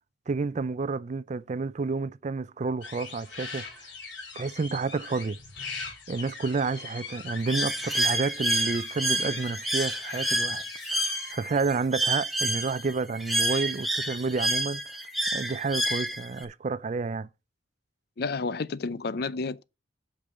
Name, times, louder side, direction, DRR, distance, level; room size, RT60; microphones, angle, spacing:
voice 1, 0.3-3.9 4.4-5.4 6.1-10.6 10.9-15.0 15.3-17.3, right 4 dB, 40° right, 0.4 m, -30 dB
sound 1, 2.8-11.3, left 4 dB, 90° left, 3.0 m, -41 dB
Bird, 7.5-16.5, right 1 dB, ahead, 1.4 m, -29 dB
voice 2, 18.2-19.6, left 4 dB, 60° left, 0.5 m, -30 dB
8.5 x 5.3 x 6.5 m
head